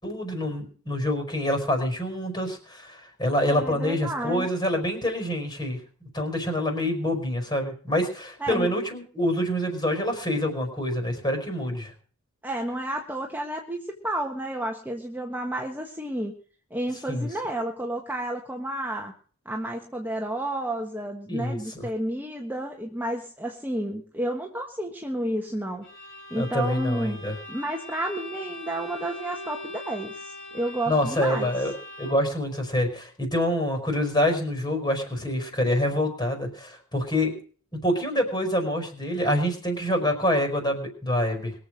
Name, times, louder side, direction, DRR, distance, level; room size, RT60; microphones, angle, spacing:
voice 1, 0.0-5.8 6.1-11.9 17.1-17.3 21.3-21.9 26.3-27.3 30.9-37.3 37.8-41.5, left 1 dB, 20° left, 4 dB, 4.9 m, -26 dB
voice 2, 3.5-4.5 8.4-8.7 12.4-13.8 14.0-16.3 16.7-19.1 19.4-25.9 26.3-27.2 27.5-31.6, right 1 dB, 10° right, 1 dB, 1.4 m, -31 dB
Bowed string instrument, 25.8-32.4, left 1 dB, 50° left, 5.2 m, -41 dB
22.5 x 7.6 x 6.3 m, 0.44 s
head